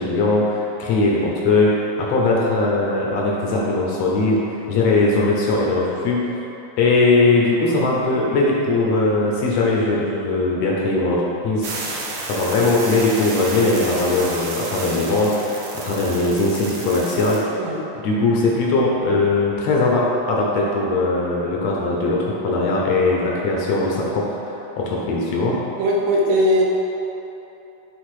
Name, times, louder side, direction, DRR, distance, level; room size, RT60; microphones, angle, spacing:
voice 1, 0.0-4.4 4.7-6.2 6.8-11.7 12.3-17.4 18.0-25.6, left 2 dB, 70° left, -3 dB, 1.6 m, -20 dB
sound 1, 11.6-17.4, right 3 dB, 90° right, 1.3 m, -31 dB
voice 2, 25.8-26.6, equal, 75° right, -3 dB, 2.5 m, -18 dB
10.5 x 3.5 x 4.9 m, 3.0 s
omnidirectional pair, 4.2 m